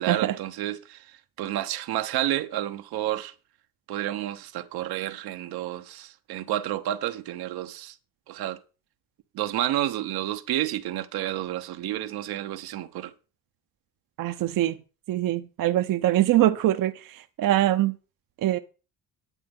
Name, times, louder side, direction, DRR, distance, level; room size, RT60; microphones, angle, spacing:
voice 1, 0.0-3.3 3.9-7.9 8.3-8.6 9.3-13.1, right 13 dB, 85° right, 1.2 m, -30 dB
voice 2, 14.2-14.8 15.1-18.0 18.4-18.6, right 14 dB, 60° right, 0.8 m, -23 dB
9.8 x 8.8 x 5.4 m
cardioid pair, 95°, 36 cm